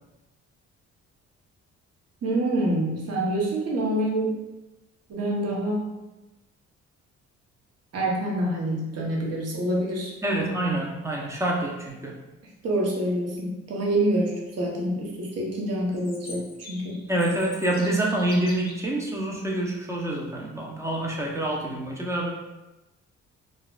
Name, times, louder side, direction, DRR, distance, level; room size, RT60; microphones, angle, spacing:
voice 1, 2.2-4.4 5.1-6.0 7.9-10.1 12.6-17.0, right 1 dB, 55° right, -2 dB, 1.0 m, -26 dB
voice 2, 10.2-12.2 17.1-22.3, right 1 dB, 10° right, -2 dB, 0.7 m, -27 dB
Chirp tweet, 15.9-18.9, left 3 dB, 30° left, 0.7 m, -44 dB
3.8 x 2.4 x 2.3 m, 1.0 s
cardioid pair, 90°, 30 cm